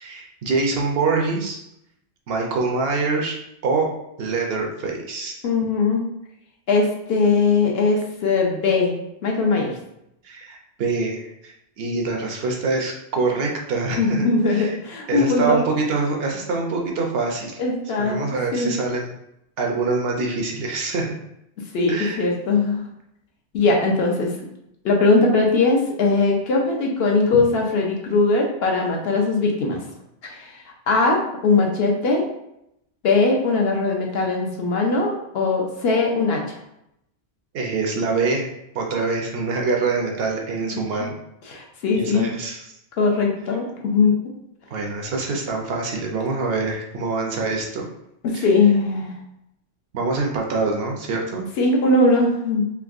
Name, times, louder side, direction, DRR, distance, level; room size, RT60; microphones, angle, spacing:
voice 1, 0.0-1.6 2.3-3.4 3.6-3.9 4.2-5.4 10.2-14.7 15.1-17.6 18.1-19.1 19.6-21.1 21.9-22.2 37.5-38.5 38.7-41.1 41.9-42.6 44.7-47.9 48.3-48.4 49.9-51.5, right 3 dB, 60° right, 1 dB, 0.7 m, -25 dB
voice 2, 5.4-6.0 6.7-9.0 9.2-9.7 14.0-15.6 17.6-18.2 18.5-18.8 21.7-22.8 23.5-24.3 24.8-29.8 30.2-32.2 33.0-36.6 40.7-40.8 41.5-42.3 43.0-44.1 48.2-49.1 51.6-52.7, left 3 dB, 60° left, 0 dB, 0.8 m, -20 dB
3.4 x 2.8 x 2.4 m, 0.81 s
omnidirectional pair, 1.3 m